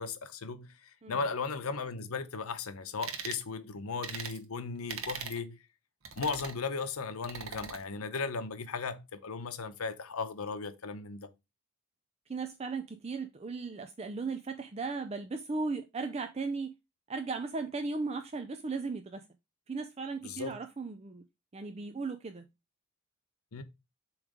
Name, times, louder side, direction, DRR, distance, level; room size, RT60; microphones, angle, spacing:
voice 1, 0.0-5.6 6.2-11.3 20.2-20.5 23.5-23.6, left 4 dB, 85° left, 0.8 m, -36 dB
sound 1, 3.0-3.4 4.0-4.4 4.9-5.4 6.0-6.6 7.2-7.8, right 6 dB, 75° right, 1.0 m, -40 dB
voice 2, 12.3-16.7 17.1-19.3 19.7-21.2 21.5-22.5, right 4 dB, 30° right, 0.4 m, -36 dB
7.2 x 3.2 x 4.9 m
head